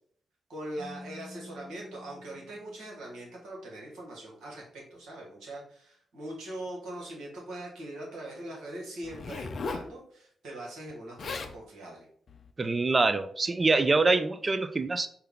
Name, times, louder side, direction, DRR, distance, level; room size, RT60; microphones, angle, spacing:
voice 1, 0.5-12.1, right 1 dB, 75° right, -4 dB, 1.4 m, -41 dB
Keyboard (musical), 0.8-3.5, left 1 dB, 60° right, 0.8 m, -49 dB
Zipper (clothing), 9.0-9.9 10.9-11.0 11.2-11.6 12.3-12.5, left 4 dB, 60° left, 0.4 m, -37 dB
voice 2, 12.6-15.1, right 3 dB, 40° right, 12 dB, 0.4 m, -25 dB
4.4 x 2.2 x 3.6 m, 0.62 s
hypercardioid pair, 40°, 0 cm